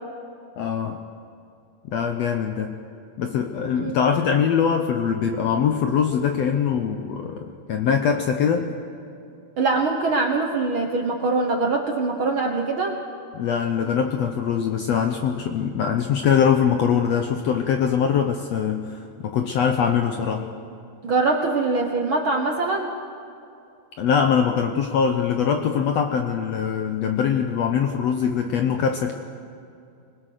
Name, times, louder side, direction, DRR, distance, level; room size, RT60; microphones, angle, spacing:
voice 1, 0.6-1.0 1.8-2.8 3.2-8.7 13.3-20.5 24.0-29.1, left 7 dB, 80° left, 5 dB, 1.5 m, -22 dB
voice 2, 9.6-13.0 21.0-22.9, right 3 dB, 65° right, 3 dB, 1.3 m, -23 dB
25.5 x 20.5 x 6.6 m, 2.6 s
omnidirectional pair, 4.1 m